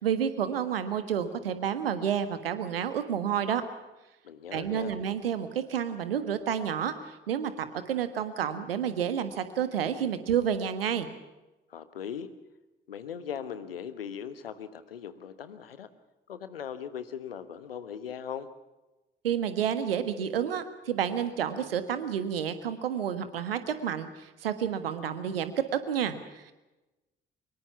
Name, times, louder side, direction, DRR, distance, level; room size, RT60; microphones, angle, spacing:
voice 1, 0.0-3.6 4.5-11.1 19.2-26.5, right 8 dB, 80° right, 11 dB, 1.5 m, -30 dB
voice 2, 4.2-4.9 11.7-12.3 12.9-15.9 16.3-18.5, left 8 dB, 80° left, 13 dB, 1.3 m, -39 dB
24.0 x 22.5 x 5.9 m, 1.0 s
figure-of-eight pair, 45°, 29 cm